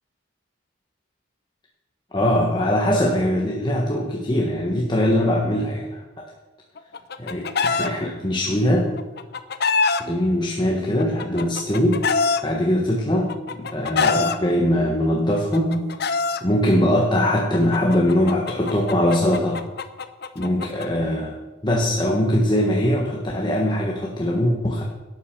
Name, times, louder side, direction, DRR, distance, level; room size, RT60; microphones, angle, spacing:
voice 1, 2.1-6.0 7.2-9.0 10.0-12.0 12.4-19.6 20.3-21.4 21.6-24.8, left 1 dB, 25° left, -1 dB, 1.4 m, -21 dB
Chicken rooster, 6.8-7.9 9.0-10.0 11.0-12.4 13.3-14.4 15.4-16.4 17.5-20.9, left 4 dB, 55° left, 0.8 m, -24 dB
12.0 x 8.8 x 6.8 m, 1.1 s
head